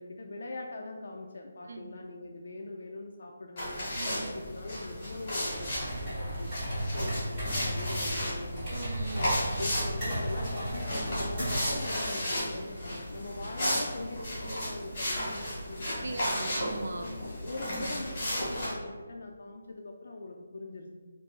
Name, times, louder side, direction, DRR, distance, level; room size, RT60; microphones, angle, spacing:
voice 1, 0.0-3.9 4.3-8.6 9.1-16.2 17.0-20.9, left 2 dB, 55° left, 2 dB, 0.3 m, -42 dB
sound 1, 3.6-18.7, equal, 20° left, 1.4 m, -34 dB
sound 2, 5.4-11.8, equal, 15° right, 1.2 m, -35 dB
voice 2, 8.7-9.3 16.0-17.1, right 2 dB, 60° right, 5 dB, 0.4 m, -40 dB
4.6 x 2.6 x 2.3 m, 1.5 s
hypercardioid pair, 175°, 0 cm